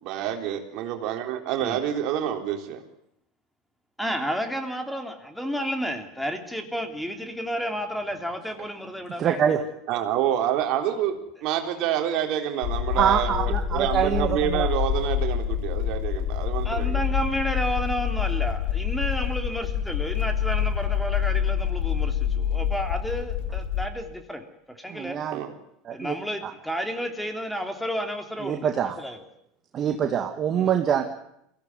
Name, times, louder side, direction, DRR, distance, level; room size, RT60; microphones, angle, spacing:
voice 1, 0.0-2.8 9.9-17.0 25.3-25.5, right 10 dB, 60° right, 5 dB, 3.7 m, -28 dB
voice 2, 4.0-9.6 16.6-25.2 25.9-28.7 29.0-29.2 30.5-30.7, equal, ahead, 5 dB, 3.1 m, -31 dB
voice 3, 9.2-9.6 12.9-14.7 24.9-25.4 25.8-26.2 26.4-26.5 28.4-29.0 29.7-31.0, right 8 dB, 40° right, 5 dB, 2.0 m, -24 dB
sound 1, 12.6-23.9, left 9 dB, 75° left, 2.6 m, -27 dB
22.5 x 16.5 x 9.7 m, 0.77 s
supercardioid pair, 100°, 0 cm